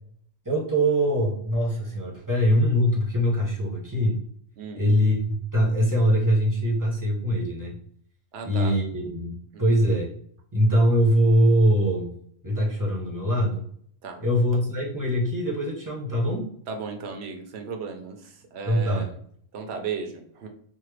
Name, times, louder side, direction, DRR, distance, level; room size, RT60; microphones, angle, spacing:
voice 1, 0.4-4.2 4.8-7.8 8.4-10.1 10.5-12.1 12.4-13.6 14.2-16.4 18.6-19.1, equal, 20° right, -3 dB, 0.8 m, -22 dB
voice 2, 8.3-8.8 9.5-9.6 14.0-14.2 16.7-19.1 19.5-20.5, right 5 dB, 70° right, 4 dB, 0.9 m, -35 dB
3.5 x 2.1 x 3.2 m, 0.62 s
omnidirectional pair, 1.2 m